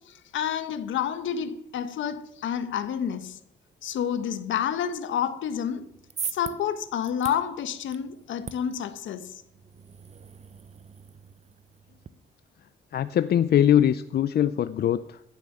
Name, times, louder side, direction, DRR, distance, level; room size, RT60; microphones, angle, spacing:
voice 1, 0.1-3.4 3.8-5.9 6.3-9.4, left 8 dB, 75° left, 1.3 m, -29 dB
sound 1, 5.8-12.1, right 6 dB, 35° right, 0.7 m, -42 dB
voice 2, 12.9-15.2, left 10 dB, 55° left, 0.6 m, -22 dB
15.5 x 7.3 x 8.9 m
cardioid pair, 90°, 20 cm